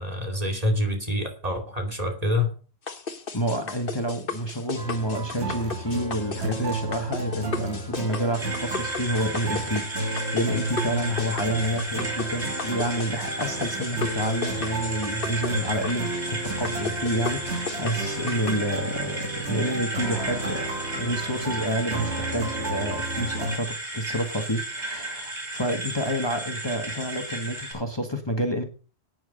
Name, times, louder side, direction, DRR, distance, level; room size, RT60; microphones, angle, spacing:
voice 1, 0.0-2.5, left 1 dB, 35° right, 3 dB, 2.7 m, -26 dB
sound 1, 2.9-18.6, left 4 dB, 55° left, 1.4 m, -35 dB
voice 2, 3.3-28.6, right 1 dB, 25° left, 4 dB, 1.5 m, -29 dB
sound 2, 4.8-23.6, right 2 dB, 85° right, 2.2 m, -32 dB
sound 3, 8.3-27.7, right 2 dB, 50° right, 5.2 m, -34 dB
9.5 x 9.1 x 6.5 m, 0.37 s
omnidirectional pair, 1.1 m